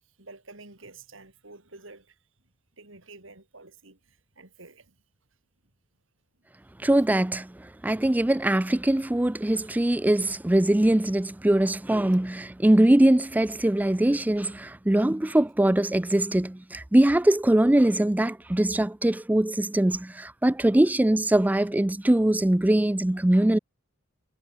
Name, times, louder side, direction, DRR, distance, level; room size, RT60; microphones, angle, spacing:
voice 1, 0.2-2.2 2.8-4.9 9.7-9.8, right 3 dB, 75° right, 4.5 m, -49 dB
voice 2, 6.8-7.5 7.8-23.6, right 1 dB, 10° right, 0.4 m, -22 dB
head